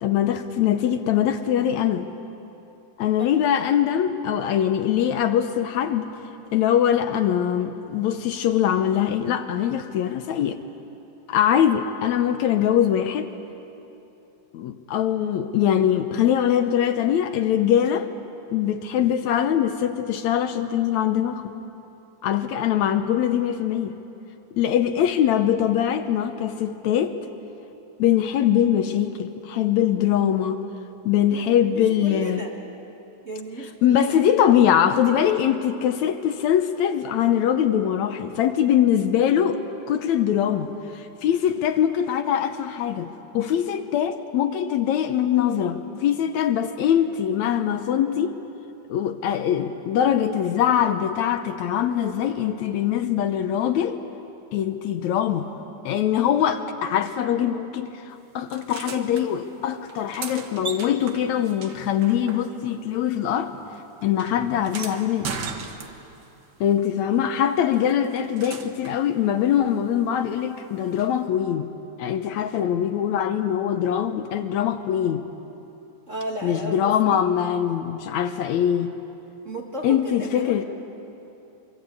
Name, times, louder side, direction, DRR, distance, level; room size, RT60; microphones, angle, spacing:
voice 1, 0.0-2.1 3.0-6.1 6.5-10.6 11.3-13.3 14.5-18.1 18.5-21.4 22.2-23.9 24.6-27.2 28.0-30.6 31.0-32.4 33.8-48.4 48.9-54.0 54.5-55.5 55.9-63.5 64.0-65.3 66.6-71.7 72.0-75.2 76.4-78.9 79.8-80.6, left 9 dB, 75° left, 8 dB, 2.0 m, -22 dB
voice 2, 3.2-3.6 31.3-32.5 33.2-34.2 41.5-41.6 76.1-77.2 79.4-80.6, right 1 dB, 30° right, -1 dB, 1.6 m, -35 dB
sound 1, 58.5-59.2 59.9-62.8 63.1-66.3 67.7-69.0 71.0-71.1, right 5 dB, 50° right, 1.6 m, -37 dB
24.5 x 24.5 x 8.4 m, 2.9 s
omnidirectional pair, 3.5 m